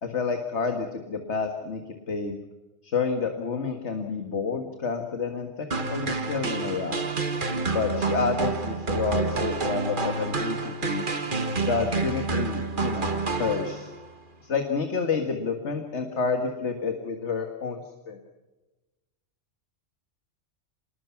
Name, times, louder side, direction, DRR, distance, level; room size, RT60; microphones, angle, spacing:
voice 1, 0.0-2.4 2.8-7.0 7.7-11.0 11.7-13.9 14.4-18.2, left 5 dB, 75° left, 5 dB, 2.1 m, -29 dB
sound 1, 5.7-14.1, right 4 dB, 45° right, 1.7 m, -28 dB
26.5 x 20.5 x 5.9 m, 1.1 s
omnidirectional pair, 1.2 m